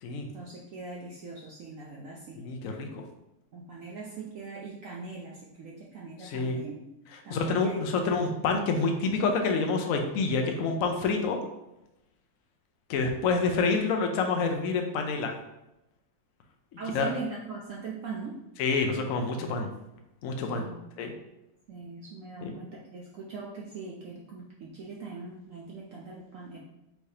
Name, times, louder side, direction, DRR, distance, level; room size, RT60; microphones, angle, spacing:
voice 1, 0.3-2.4 3.5-6.8 7.2-7.9 16.8-18.3 20.4-20.8 21.7-26.6, right 4 dB, 75° right, -3 dB, 0.7 m, -41 dB
voice 2, 2.4-3.0 6.2-6.6 7.3-11.4 12.9-15.3 16.9-17.1 18.6-19.7 20.2-20.6 21.0-21.1 22.4-22.5, left 4 dB, 75° left, 3 dB, 0.8 m, -27 dB
4.7 x 3.3 x 2.7 m, 0.91 s
omnidirectional pair, 2.0 m